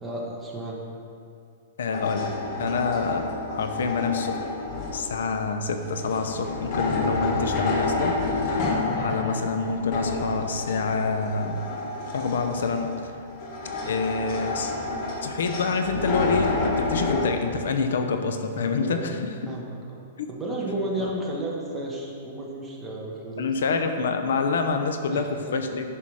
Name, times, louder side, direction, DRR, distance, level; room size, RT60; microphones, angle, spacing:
voice 1, 0.0-0.8 18.8-19.1 19.5-20.0 20.3-23.5 25.1-25.5, right 1 dB, 5° right, -4 dB, 1.3 m, -33 dB
voice 2, 1.8-2.3 2.6-4.4 4.9-8.2 8.5-11.6 12.1-13.0 13.9-14.7 15.2-19.5 20.2-20.3 21.0-21.1 23.4-26.0, left 4 dB, 80° left, 6 dB, 0.8 m, -27 dB
sound 1, 1.9-17.3, left 3 dB, 30° left, 1.2 m, -29 dB
10.0 x 5.8 x 4.9 m, 2.4 s
hypercardioid pair, 160°, 0 cm